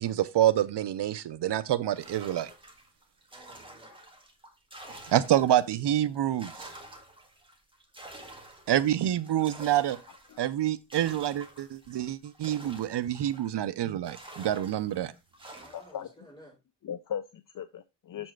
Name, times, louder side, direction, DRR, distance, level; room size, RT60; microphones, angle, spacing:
voice 1, 0.0-2.5 5.1-6.7 8.7-10.0 10.4-15.1, right 12 dB, 75° right, 0.6 m, -27 dB
sound 1, 1.9-5.8 6.1-13.6 14.0-16.0, right 1 dB, 10° right, 1.7 m, -49 dB
voice 2, 3.3-3.9 6.0-6.2 15.5-16.6, right 1 dB, 10° left, 5.4 m, -55 dB
voice 3, 15.7-16.1 16.8-18.3, left 9 dB, 50° left, 0.5 m, -38 dB
7.4 x 4.4 x 4.5 m
wide cardioid pair, 105°, 41 cm